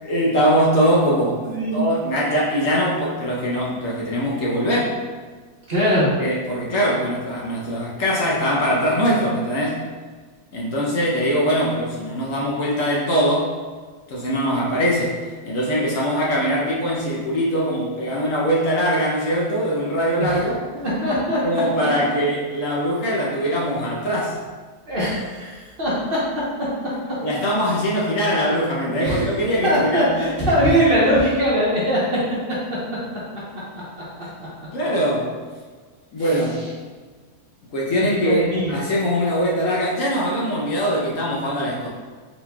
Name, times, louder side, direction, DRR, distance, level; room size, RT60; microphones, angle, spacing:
voice 1, 0.0-1.4 1.7-5.0 6.2-9.8 10.5-13.5 14.1-15.2 15.5-20.6 21.4-24.4 27.2-30.1 34.7-35.3 36.1-36.6 37.7-38.4 38.7-41.9, equal, 65° left, -4 dB, 1.0 m, -22 dB
voice 2, 1.4-1.8 5.7-6.1 20.2-20.4 20.7-21.4 24.9-26.2 29.0-29.3 29.6-32.0 33.9-34.0 34.4-34.5 36.2-36.7 37.9-38.8, equal, 40° right, -8 dB, 1.1 m, -21 dB
4.1 x 4.0 x 2.2 m, 1.5 s
omnidirectional pair, 1.6 m